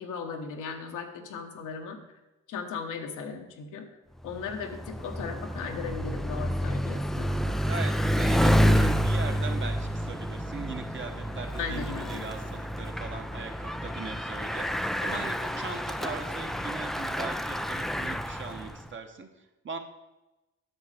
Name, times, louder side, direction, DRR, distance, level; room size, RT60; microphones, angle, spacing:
voice 1, 0.0-2.0 2.5-3.9 4.2-7.6 11.6-12.3, left 5 dB, 85° left, 4 dB, 1.3 m, -37 dB
Bicycle, 4.2-18.9, equal, ahead, 0.3 m, -29 dB
voice 2, 7.6-19.3 19.6-19.8, right 4 dB, 40° right, 5 dB, 1.2 m, -39 dB
9.2 x 6.5 x 5.0 m, 1.0 s
cardioid pair, 90°, 30 cm